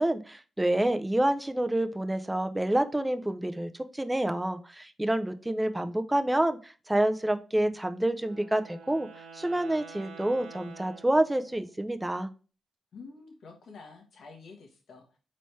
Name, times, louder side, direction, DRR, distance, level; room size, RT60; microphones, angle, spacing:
voice 1, 0.0-9.1 9.3-12.3, right 1 dB, 10° right, 8 dB, 0.5 m, -28 dB
Wind instrument woodwind instrument, 8.1-11.8, right 5 dB, 90° right, 0.8 m, -48 dB
voice 2, 12.9-15.2, left 4 dB, 65° left, 2 dB, 1.0 m, -49 dB
4.1 x 3.2 x 3.2 m, 0.35 s
cardioid pair, 60°, 0 cm